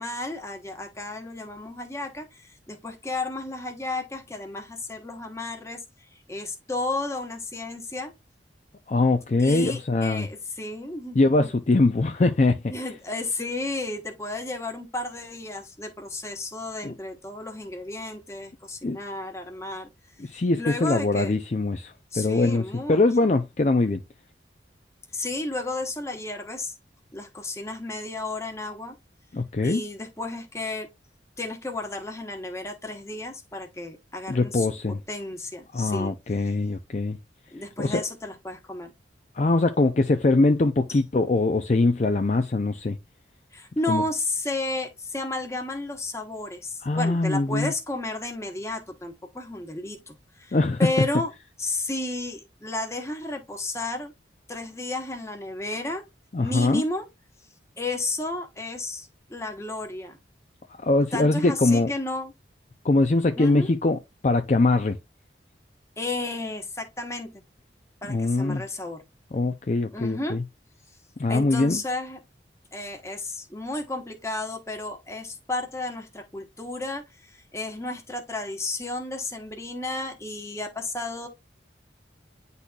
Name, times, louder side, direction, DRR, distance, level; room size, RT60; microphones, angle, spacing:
voice 1, 0.0-5.8 6.1-8.1 9.4-11.5 12.7-19.9 20.5-21.3 22.1-23.3 25.1-26.7 27.1-29.0 29.6-30.9 31.4-36.1 37.5-38.9 40.9-41.0 43.5-51.3 51.6-54.1 54.5-56.0 56.4-57.0 57.8-60.2 61.1-62.3 63.4-63.7 66.0-67.4 68.0-69.0 69.9-70.4 71.3-72.2 72.7-81.3, left 2 dB, 15° left, 1.1 m, -32 dB
voice 2, 8.9-10.3 11.1-12.7 16.8-16.9 18.8-19.0 20.2-24.0 29.3-29.8 34.3-35.0 35.7-37.2 37.8-38.0 39.3-43.0 43.9-44.0 46.8-47.7 50.5-50.9 56.3-56.8 60.8-61.9 62.8-64.0 64.2-65.0 68.1-68.6 69.3-70.4 71.2-71.8, left 2 dB, 40° left, 0.4 m, -22 dB
9.8 x 4.1 x 2.3 m
head